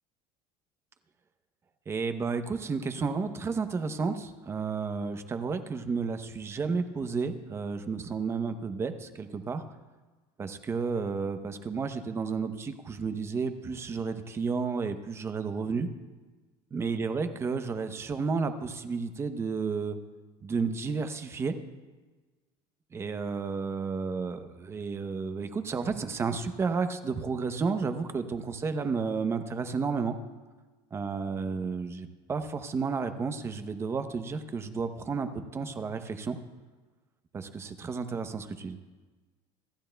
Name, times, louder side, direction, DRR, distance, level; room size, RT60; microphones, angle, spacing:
voice 1, 1.9-9.6 10.4-15.9 16.7-20.0 20.4-21.5 22.9-30.1 30.9-36.4 37.3-38.8, right 5 dB, 20° right, 8 dB, 0.7 m, -32 dB
26.0 x 12.5 x 2.2 m, 1.3 s
cardioid pair, 150°, 13 cm